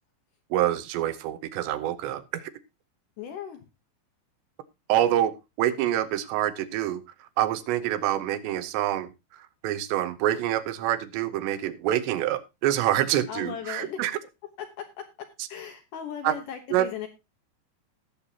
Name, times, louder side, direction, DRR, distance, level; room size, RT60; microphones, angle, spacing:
voice 1, 0.5-2.5 4.9-14.1 16.2-16.4 16.7-16.9, right 12 dB, 85° right, 12 dB, 3.1 m, -26 dB
voice 2, 3.2-3.6 13.3-14.0 14.8-14.9 15.5-17.1, left 8 dB, 65° left, 6 dB, 2.2 m, -36 dB
18.0 x 7.2 x 2.8 m, 0.25 s
omnidirectional pair, 5.0 m